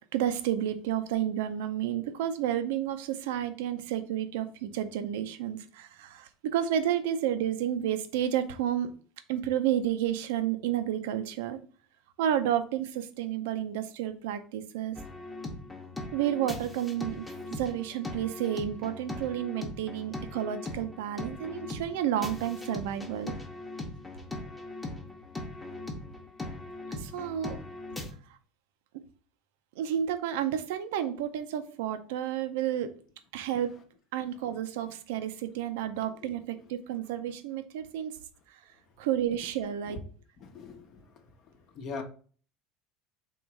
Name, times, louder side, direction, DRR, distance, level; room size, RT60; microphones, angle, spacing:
voice 1, 0.1-8.9 9.3-11.6 12.2-15.0 16.1-17.2 17.5-23.3 26.9-27.6 29.8-33.0 33.3-33.8 34.1-38.2 39.0-40.0, right 10 dB, 90° right, 0.5 m, -31 dB
sound 1, 15.0-28.1, left 2 dB, 10° left, 0.8 m, -40 dB
voice 2, 40.4-41.1 41.7-42.0, left 4 dB, 50° left, 0.8 m, -40 dB
3.8 x 3.0 x 4.6 m
supercardioid pair, 130°, 0 cm